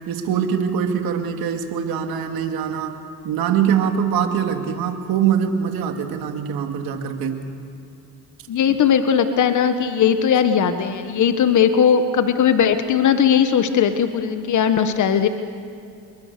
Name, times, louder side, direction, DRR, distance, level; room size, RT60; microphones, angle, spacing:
voice 1, 0.1-7.4 8.7-8.8, right 8 dB, 75° right, 5 dB, 2.3 m, -23 dB
voice 2, 8.5-15.3, left 8 dB, 55° left, 9 dB, 1.3 m, -18 dB
26.5 x 22.5 x 6.8 m, 2.7 s
supercardioid pair, 70°, 36 cm